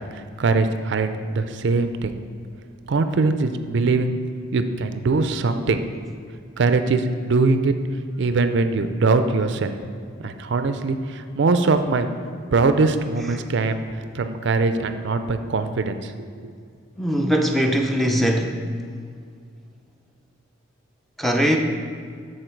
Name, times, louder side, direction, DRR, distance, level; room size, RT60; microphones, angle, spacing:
voice 1, 0.0-2.1 2.9-4.1 4.5-5.8 6.6-7.7 8.2-9.8 10.2-12.1 12.5-13.8 14.1-16.5, right 3 dB, 60° right, 9 dB, 0.4 m, -22 dB
voice 2, 17.0-18.7 21.2-21.6, equal, ahead, 2 dB, 0.5 m, -21 dB
13.0 x 4.4 x 4.5 m, 2.2 s
head